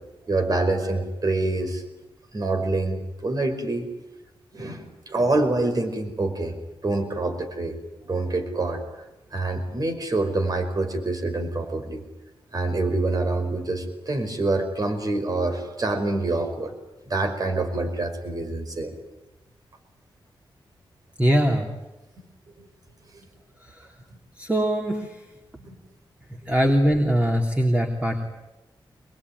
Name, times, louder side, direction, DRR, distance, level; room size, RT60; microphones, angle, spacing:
voice 1, 0.3-1.8 2.3-3.9 4.5-6.5 6.8-7.7 8.0-8.8 9.3-12.0 12.5-16.7 17.1-18.9 22.6-22.7 23.1-23.3 25.6-25.7, right 2 dB, 45° right, 6 dB, 5.2 m, -26 dB
voice 2, 21.2-21.7 24.4-25.2 26.3-28.2, equal, 15° right, 2 dB, 3.2 m, -21 dB
25.0 x 22.0 x 9.7 m, 1.0 s
cardioid pair, 90°, 9 cm